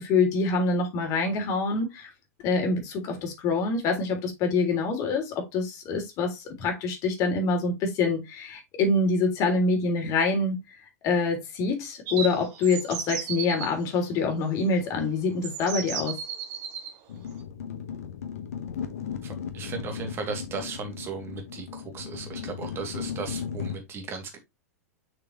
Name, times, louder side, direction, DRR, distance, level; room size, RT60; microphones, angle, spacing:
voice 1, 0.0-2.1 2.4-16.2, left 3 dB, 40° left, 3.4 m, -26 dB
sound 1, 12.1-13.7 14.8-14.9 15.4-16.9, right 7 dB, 45° right, 2.7 m, -34 dB
sound 2, 17.1-23.8, left 7 dB, 65° left, 1.5 m, -36 dB
voice 2, 19.2-24.4, right 5 dB, 30° right, 2.9 m, -36 dB
6.9 x 6.2 x 3.3 m
figure-of-eight pair, 100°, 9 cm